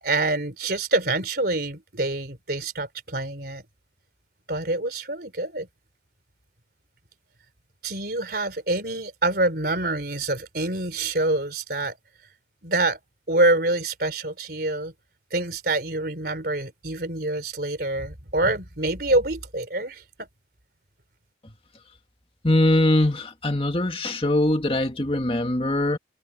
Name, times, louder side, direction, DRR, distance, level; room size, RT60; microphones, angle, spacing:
voice 1, 0.0-3.6 4.5-5.7 7.8-12.0 12.6-13.0 13.3-14.9 15.3-20.0, right 2 dB, 55° right, 4.1 m, -26 dB
voice 2, 22.4-26.0, left 1 dB, 30° left, 2.0 m, -22 dB
head